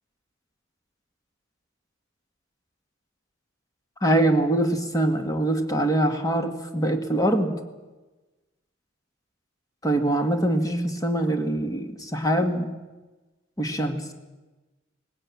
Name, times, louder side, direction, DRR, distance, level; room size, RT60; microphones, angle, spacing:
voice 1, 4.0-7.5 9.8-12.7 13.6-14.0, right 1 dB, 20° left, 5 dB, 2.0 m, -23 dB
19.5 x 17.0 x 8.7 m, 1.2 s
head